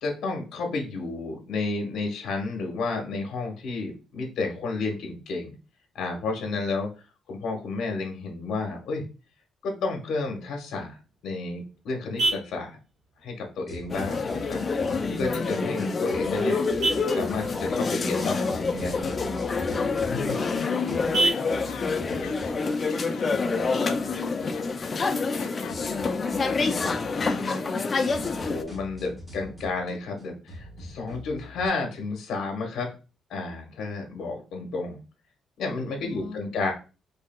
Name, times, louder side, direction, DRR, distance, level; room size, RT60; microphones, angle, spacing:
voice 1, 0.0-5.5 5.9-6.9 7.3-9.0 9.6-11.0 11.2-12.8 13.2-14.6 15.2-16.6 17.2-19.1 20.0-20.3 28.2-32.9 33.3-35.0 35.6-36.7, left 3 dB, 70° left, 1.0 m, -31 dB
Vehicle horn car horn honking, 10.9-23.9, right 2 dB, 70° right, 1.7 m, -35 dB
sound 1, 13.7-16.3 16.6-21.2 21.5-31.7, left 1 dB, ahead, 1.2 m, -44 dB
sound 2, 13.9-28.6, left 4 dB, 30° left, 0.3 m, -27 dB
voice 2, 20.1-25.1 25.3-27.6 36.0-36.5, left 7 dB, 85° left, 0.5 m, -39 dB
4.8 x 2.7 x 2.2 m
cardioid pair, 160°, 0 cm